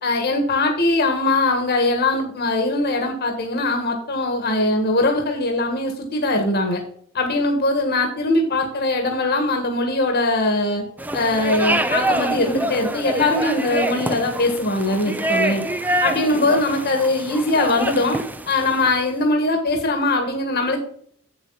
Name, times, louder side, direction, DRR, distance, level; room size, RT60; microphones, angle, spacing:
voice 1, 0.0-6.8 7.1-10.8 11.1-15.6 16.0-18.2 18.5-20.9, left 2 dB, 50° left, 3 dB, 1.6 m, -21 dB
sound 1, 11.0-19.1, right 1 dB, 10° right, 0.6 m, -26 dB
8.0 x 7.2 x 4.1 m, 0.62 s
head